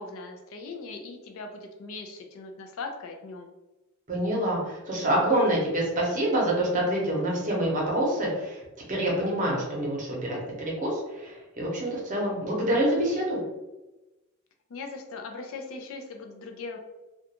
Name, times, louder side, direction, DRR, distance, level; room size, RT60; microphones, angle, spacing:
voice 1, 0.0-3.5 14.7-16.8, left 3 dB, 65° left, 3 dB, 0.4 m, -39 dB
voice 2, 4.1-8.6 8.9-13.4, right 1 dB, 35° right, -3 dB, 0.7 m, -26 dB
2.4 x 2.2 x 2.8 m, 1.1 s
head